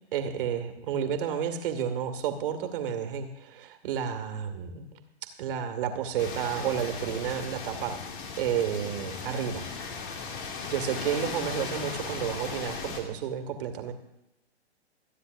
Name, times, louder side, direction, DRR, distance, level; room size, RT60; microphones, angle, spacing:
voice 1, 0.1-5.0 5.4-8.0 8.4-9.6 10.7-13.9, right 8 dB, 50° right, 6 dB, 2.1 m, -31 dB
sound 1, 6.2-13.0, left 5 dB, 50° left, 2.5 m, -37 dB
27.0 x 9.8 x 2.6 m, 0.88 s
figure-of-eight pair, 120°, 33 cm